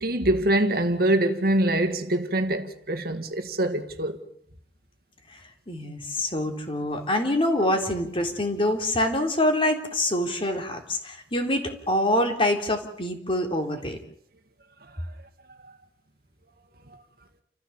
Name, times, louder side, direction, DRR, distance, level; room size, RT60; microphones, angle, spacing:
voice 1, 0.0-4.2, right 1 dB, 60° right, 1.9 m, -24 dB
voice 2, 5.7-14.0, left 1 dB, 30° left, 3.5 m, -25 dB
30.0 x 15.0 x 7.2 m
head